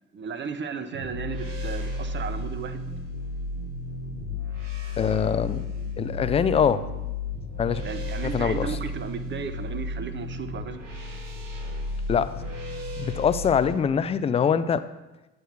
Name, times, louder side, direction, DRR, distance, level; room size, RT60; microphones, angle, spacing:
voice 1, 0.1-2.8 7.8-10.8, right 6 dB, 30° right, 10 dB, 0.7 m, -35 dB
sound 1, 0.9-13.7, left 3 dB, 80° right, 1.1 m, -33 dB
voice 2, 5.0-5.7 6.0-6.8 7.6-7.8 8.3-8.7 12.1-12.3 13.0-14.8, left 7 dB, 15° left, 14 dB, 0.3 m, -23 dB
8.9 x 3.2 x 6.7 m, 1.0 s
figure-of-eight pair, 50°, 36 cm